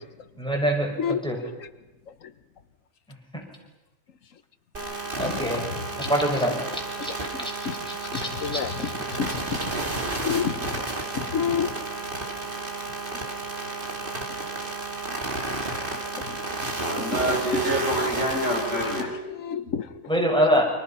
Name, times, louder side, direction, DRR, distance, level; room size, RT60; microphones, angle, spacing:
voice 1, 0.4-1.4 3.1-3.4 5.2-5.7 6.0-7.1 7.4-7.5 7.9-8.6 9.9-10.0 15.5-16.0 20.1-20.7, equal, 5° left, 6.0 m, -26 dB
sound 1, 4.7-19.0, right 2 dB, 40° right, 3.3 m, -32 dB
voice 2, 5.2-5.7 7.7-7.8 8.1-8.7 9.1-9.8 10.2-10.8 11.1-11.8 15.1-15.2 15.9-17.2 18.8-20.0, left 7 dB, 85° left, 1.5 m, -30 dB
voice 3, 16.8-19.2, right 1 dB, 70° right, 7.2 m, -27 dB
30.0 x 26.0 x 5.7 m
omnidirectional pair, 1.3 m